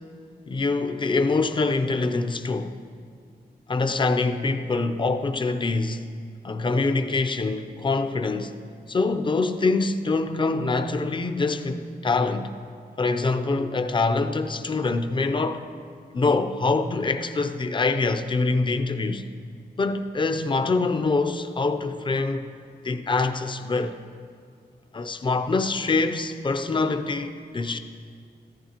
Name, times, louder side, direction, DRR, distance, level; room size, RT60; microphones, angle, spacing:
voice 1, 0.5-2.8 3.7-6.0 6.4-8.6 8.9-12.5 13.0-15.6 16.1-19.2 19.8-22.5 22.8-24.0 24.9-27.8, left 3 dB, 30° left, 0.5 m, -24 dB
14.5 x 12.5 x 2.9 m
wide cardioid pair, 140°, 17 cm